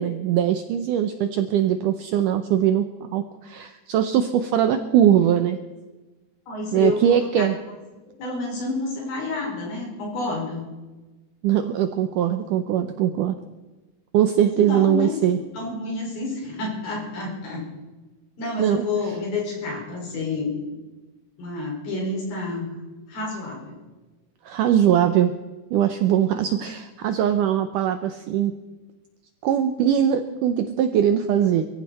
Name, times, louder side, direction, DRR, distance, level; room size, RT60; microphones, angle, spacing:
voice 1, 0.0-2.9 3.1-5.6 6.7-7.6 11.4-13.4 14.1-15.4 18.6-19.2 24.5-25.3 25.7-28.5 29.4-31.7, right 10 dB, 80° right, 9 dB, 1.9 m, -21 dB
voice 2, 6.5-7.3 8.2-10.6 14.7-15.2 15.5-17.6 18.4-20.8 21.4-22.8 23.1-23.8, left 3 dB, 65° left, -2 dB, 7.3 m, -29 dB
23.0 x 14.5 x 4.2 m, 1.2 s
omnidirectional pair, 4.6 m